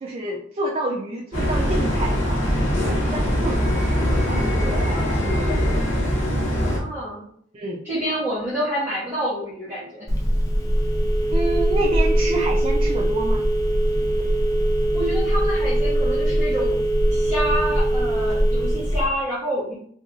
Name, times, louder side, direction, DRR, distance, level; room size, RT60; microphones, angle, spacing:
voice 1, 0.0-2.4 2.8-5.8 7.5-7.8 11.3-13.5, right 2 dB, 30° right, -1 dB, 0.4 m, -29 dB
sound 1, 1.3-6.8, equal, 40° left, 1.2 m, -22 dB
voice 2, 6.6-7.3 7.8-10.1 14.9-16.8 17.1-19.7, equal, 10° right, -11 dB, 1.0 m, -28 dB
Telephone, 10.1-19.1, right 1 dB, 20° left, 0.6 m, -21 dB
3.0 x 2.4 x 3.7 m, 0.63 s
head